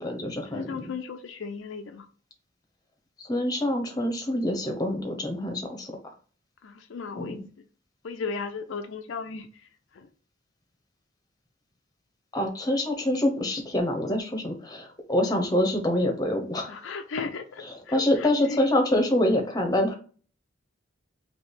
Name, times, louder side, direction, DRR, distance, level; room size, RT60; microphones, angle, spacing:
voice 1, 0.0-0.8 3.2-5.9 7.2-7.4 12.3-16.9 17.7-20.0, left 1 dB, 20° left, 3 dB, 0.8 m, -26 dB
voice 2, 0.5-2.1 6.6-7.4 8.0-9.5 9.9-10.1 16.7-18.6, left 4 dB, 65° left, 6 dB, 0.4 m, -35 dB
3.2 x 2.9 x 4.4 m, 0.40 s
head